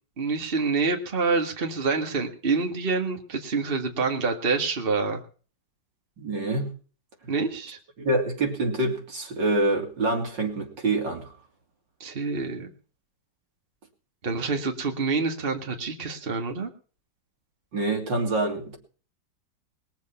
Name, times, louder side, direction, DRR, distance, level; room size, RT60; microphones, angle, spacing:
voice 1, 0.2-5.2 7.3-7.8 12.0-12.7 14.2-16.7, right 4 dB, 30° right, 4 dB, 2.0 m, -27 dB
voice 2, 6.2-6.7 8.0-11.3 17.7-18.8, right 2 dB, 75° right, 1 dB, 3.7 m, -26 dB
21.5 x 7.4 x 5.7 m, 0.40 s
omnidirectional pair, 2.0 m